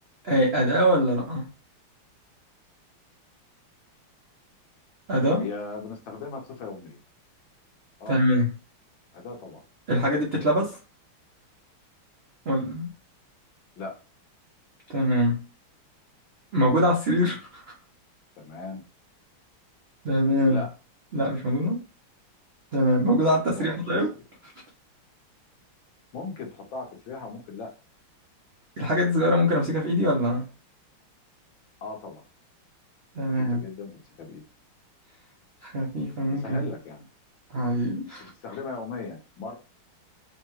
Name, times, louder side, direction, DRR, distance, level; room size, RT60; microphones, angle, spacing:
voice 1, 0.2-1.5 5.1-5.4 8.1-8.5 9.9-10.8 12.5-12.9 14.9-15.4 16.5-17.7 20.0-20.6 21.1-21.8 22.7-24.1 24.4-24.5 28.8-30.4 33.1-33.6 35.6-36.7 37.5-38.3, equal, 55° right, 0.7 m, -23 dB
voice 2, 5.4-7.0 8.0-8.2 9.1-9.6 13.8-13.9 18.4-18.8 20.5-20.7 23.5-23.8 26.1-27.7 31.8-32.2 33.3-34.4 36.2-37.0 37.5-37.7 38.2-39.6, left 4 dB, 70° left, 1.8 m, -38 dB
5.5 x 2.3 x 3.1 m
omnidirectional pair, 2.3 m